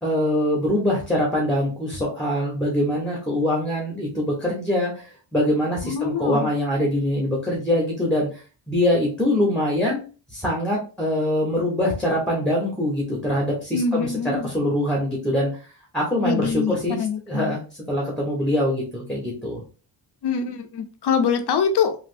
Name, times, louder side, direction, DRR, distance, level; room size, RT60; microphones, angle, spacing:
voice 1, 0.0-8.4 8.7-10.0 10.3-15.5 15.9-17.0 17.3-17.6 17.9-19.6, left 1 dB, ahead, -2 dB, 1.0 m, -23 dB
voice 2, 5.8-6.5 13.7-14.5 16.2-17.6 20.2-22.0, left 6 dB, 70° left, 7 dB, 0.7 m, -24 dB
3.3 x 2.5 x 2.5 m, 0.36 s
cardioid pair, 100°, 42 cm